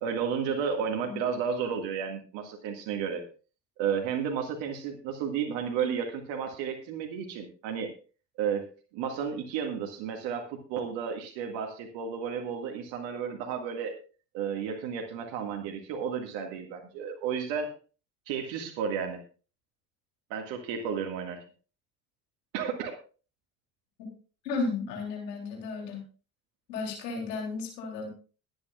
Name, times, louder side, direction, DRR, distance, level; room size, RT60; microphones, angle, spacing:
voice 1, 0.0-3.2 3.8-7.9 8.4-8.6 8.9-13.9 14.3-17.7 18.3-19.2 20.3-21.4 22.5-23.0, right 7 dB, 65° right, 3 dB, 1.9 m, -32 dB
voice 2, 24.4-26.0 26.7-28.1, left 4 dB, 80° left, 1 dB, 3.4 m, -34 dB
21.5 x 8.9 x 2.4 m, 0.36 s
hypercardioid pair, 55°, 49 cm